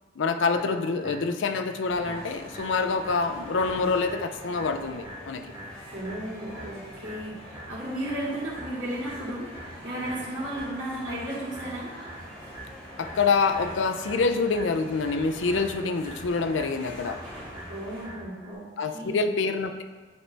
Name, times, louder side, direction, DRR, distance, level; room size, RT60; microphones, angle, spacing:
voice 1, 0.2-5.4 13.0-17.2 18.8-19.8, left 4 dB, 75° left, 7 dB, 0.5 m, -26 dB
sound 1, 0.5-18.5, right 1 dB, 15° right, 1.8 m, -45 dB
sound 2, 1.8-18.0, equal, 5° left, 1.8 m, -44 dB
voice 2, 5.9-11.9 17.7-18.6 18.9-19.3, right 1 dB, 85° right, -8 dB, 2.0 m, -34 dB
8.5 x 4.4 x 3.3 m, 1.4 s
head